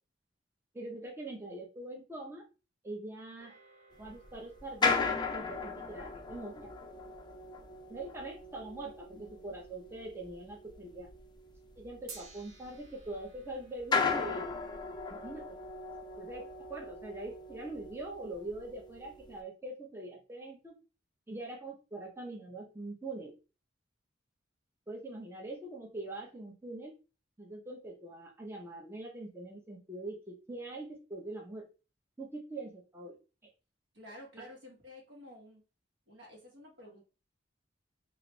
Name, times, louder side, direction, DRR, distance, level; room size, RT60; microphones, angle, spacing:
voice 1, 0.7-2.5 2.8-3.5 4.0-5.0 5.3-6.7 7.9-11.1 11.8-14.5 15.1-15.5 16.2-20.7 21.3-23.3 24.9-26.9 27.4-31.7 32.2-33.2 34.4-34.5, right 2 dB, 15° right, -1 dB, 0.7 m, -43 dB
sound 1, 3.4-9.9 12.1-16.5, right 4 dB, 85° right, 1.0 m, -58 dB
sound 2, 4.0-13.4 13.8-19.4, left 4 dB, 25° left, 0.4 m, -37 dB
voice 2, 33.9-35.6 36.1-37.0, left 1 dB, 65° right, -1 dB, 1.3 m, -51 dB
3.2 x 2.5 x 3.1 m, 0.33 s
head